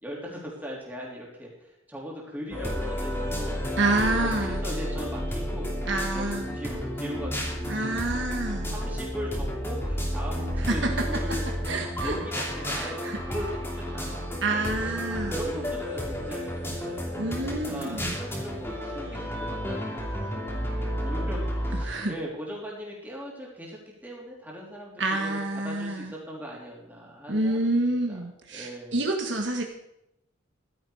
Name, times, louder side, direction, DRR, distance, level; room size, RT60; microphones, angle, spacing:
voice 1, 0.0-3.6 4.2-7.9 8.7-11.5 12.0-17.0 17.4-28.2 28.5-29.0, equal, 10° right, -3 dB, 3.6 m, -39 dB
sound 1, 2.5-21.8, equal, 10° left, 2.8 m, -31 dB
voice 2, 3.8-4.6 5.9-6.5 7.7-8.7 10.7-10.8 11.7-12.4 12.7-13.2 14.4-15.3 17.2-18.1 21.8-22.1 25.0-26.1 27.3-29.6, right 2 dB, 65° right, 3 dB, 1.7 m, -28 dB
15.0 x 12.0 x 5.0 m, 0.84 s
head